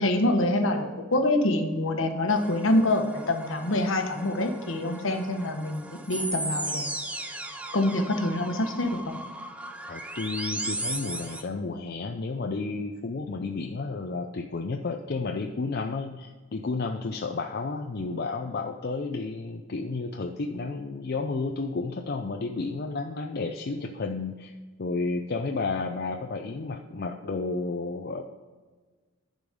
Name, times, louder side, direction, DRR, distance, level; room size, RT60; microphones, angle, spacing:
voice 1, 0.0-6.9 7.7-9.2, left 1 dB, 70° left, 5 dB, 1.2 m, -26 dB
sound 1, 2.3-11.4, right 1 dB, 5° right, 0.6 m, -36 dB
voice 2, 9.9-24.5 24.8-28.2, left 3 dB, 50° left, 4 dB, 0.5 m, -32 dB
10.5 x 5.2 x 5.2 m, 1.4 s
head